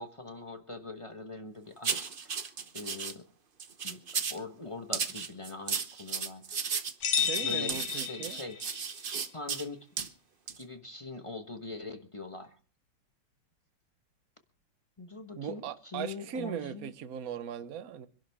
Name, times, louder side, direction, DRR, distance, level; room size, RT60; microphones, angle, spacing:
voice 1, 0.0-2.3 2.7-3.2 3.8-4.0 4.3-6.7 7.4-8.6 9.3-9.9 10.6-12.5 15.0-16.9, left 3 dB, 25° left, 0.7 m, -42 dB
sound 1, 1.8-3.1 3.6-4.4 4.9-9.6 10.0-10.1 10.5-10.6, right 6 dB, 90° right, 0.4 m, -34 dB
sound 2, 7.0-8.8, left 8 dB, 90° left, 2.3 m, -32 dB
voice 2, 7.1-8.4 15.3-18.1, right 8 dB, 55° right, 1.2 m, -38 dB
25.5 x 11.5 x 3.5 m
omnidirectional pair, 2.4 m